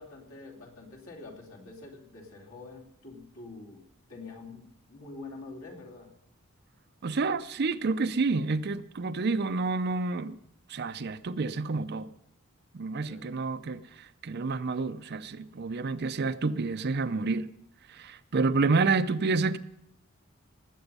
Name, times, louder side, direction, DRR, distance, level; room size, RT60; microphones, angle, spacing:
voice 1, 0.0-3.8 4.1-6.1 13.0-13.3, left 3 dB, 90° left, 2.8 m, -46 dB
voice 2, 7.0-10.4 10.7-12.1 12.7-13.8 14.2-17.5 17.9-19.6, right 3 dB, 50° right, 0.5 m, -29 dB
19.0 x 8.0 x 5.4 m
head